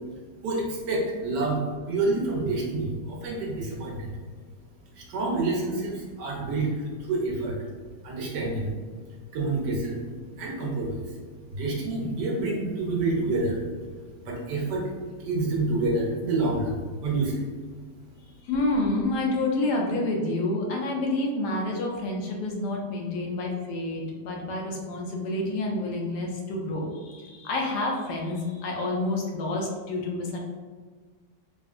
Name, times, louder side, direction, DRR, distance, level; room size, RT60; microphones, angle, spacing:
voice 1, 0.4-4.2 4.9-7.6 8.0-8.7 9.3-10.0 10.4-11.2 11.5-13.6 14.2-14.9 15.2-17.4, right 2 dB, 85° right, -2 dB, 1.4 m, -28 dB
voice 2, 18.4-30.4, left 2 dB, 75° left, 0 dB, 1.1 m, -28 dB
3.6 x 2.4 x 2.4 m, 1.5 s
omnidirectional pair, 1.8 m